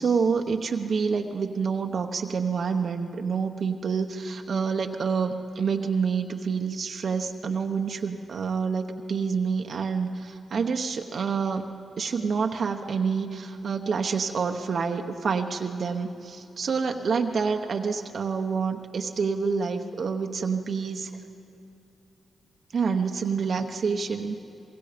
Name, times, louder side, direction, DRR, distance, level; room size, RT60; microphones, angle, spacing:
voice 1, 0.0-11.7 12.0-21.1 22.7-24.4, right 5 dB, 65° right, 4 dB, 1.0 m, -27 dB
25.0 x 21.5 x 5.1 m, 2.8 s
cardioid pair, 60°, 0 cm